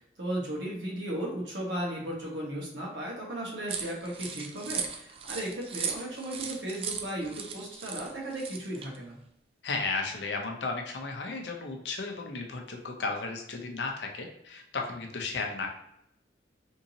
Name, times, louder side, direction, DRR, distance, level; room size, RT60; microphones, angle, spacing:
voice 1, 0.2-9.2, right 1 dB, 75° right, -3 dB, 1.3 m, -35 dB
sound 1, 3.7-9.0, right 6 dB, 35° right, 0.3 m, -37 dB
voice 2, 9.6-15.7, left 3 dB, 70° left, 2 dB, 0.6 m, -34 dB
3.7 x 2.7 x 2.8 m, 0.76 s
head